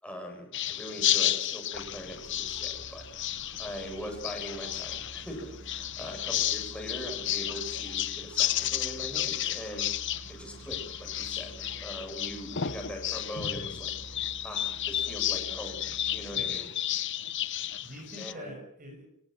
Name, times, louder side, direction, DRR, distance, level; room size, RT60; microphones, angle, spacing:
voice 1, 0.0-3.1 3.6-9.9 10.3-13.9 14.4-16.7 18.2-18.5, equal, 5° left, 2 dB, 7.8 m, -41 dB
sound 1, 0.5-18.3, left 12 dB, 60° left, 0.9 m, -32 dB
sound 2, 1.7-16.4, right 2 dB, 70° right, 4.2 m, -49 dB
voice 2, 16.3-16.6 17.8-19.0, equal, 40° right, 1 dB, 6.2 m, -45 dB
25.5 x 18.0 x 7.6 m, 0.70 s
head